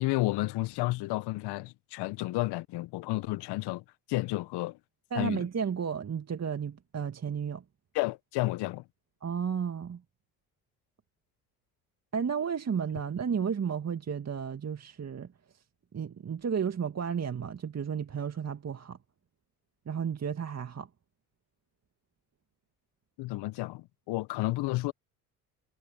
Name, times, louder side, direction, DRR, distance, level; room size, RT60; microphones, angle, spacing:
voice 1, 0.0-4.8 5.1-5.4 7.9-8.8 23.2-24.9, left 19 dB, 60° left, 1.1 m, -31 dB
voice 2, 5.1-7.6 9.2-10.0 12.1-15.3 15.9-19.0 19.9-20.9, right 7 dB, 35° right, 2.2 m, -32 dB
hypercardioid pair, 55°, 45 cm